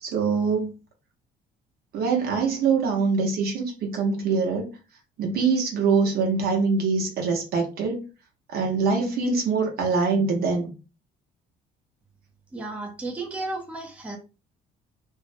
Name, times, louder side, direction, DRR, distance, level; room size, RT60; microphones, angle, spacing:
voice 1, 0.0-0.7 1.9-4.7 5.2-8.0 8.5-10.7, right 4 dB, 65° right, 0.9 m, -24 dB
voice 2, 12.5-14.2, right 2 dB, 5° right, 0.6 m, -33 dB
2.5 x 2.0 x 2.5 m
cardioid pair, 110°, 17 cm